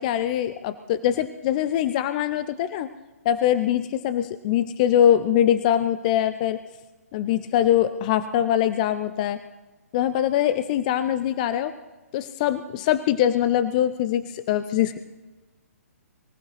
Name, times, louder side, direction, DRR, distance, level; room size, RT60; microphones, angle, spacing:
voice 1, 0.0-2.9 3.2-6.6 7.1-9.4 9.9-11.7 12.1-15.0, left 11 dB, 30° left, 12 dB, 0.5 m, -23 dB
23.5 x 16.0 x 3.2 m, 1.2 s
figure-of-eight pair, 125°, 8 cm